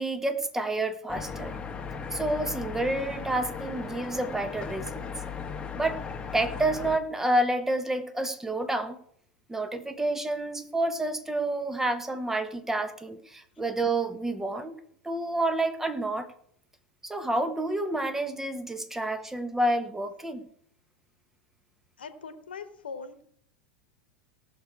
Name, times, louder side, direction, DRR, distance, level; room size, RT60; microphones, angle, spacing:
voice 1, 0.0-1.6 2.1-5.1 5.7-6.0 6.3-9.0 9.5-14.8 15.0-16.3 17.0-20.4, right 1 dB, 5° right, 10 dB, 1.4 m, -29 dB
sound 1, 1.1-7.0, left 5 dB, 20° left, 1.3 m, -37 dB
voice 2, 22.0-23.2, left 5 dB, 75° left, 10 dB, 1.3 m, -41 dB
18.0 x 6.6 x 4.8 m, 0.66 s
figure-of-eight pair, 85°, 5 cm